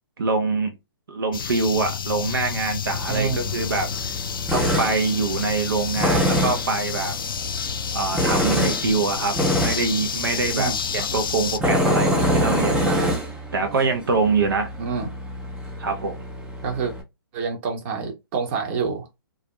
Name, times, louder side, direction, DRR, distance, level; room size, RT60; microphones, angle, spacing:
voice 1, 0.2-0.8 1.1-4.1 4.5-7.2 7.9-13.1 13.5-14.7 15.8-16.2, right 4 dB, 70° right, 0.6 m, -24 dB
sound 1, 1.3-11.6, left 7 dB, 65° left, 0.4 m, -30 dB
Tools, 2.9-17.0, equal, 5° right, 0.5 m, -26 dB
voice 2, 10.6-11.1 14.8-15.1 16.6-16.9 17.3-19.1, right 5 dB, 35° right, 0.8 m, -27 dB
2.4 x 2.1 x 2.9 m
hypercardioid pair, 135°, 12 cm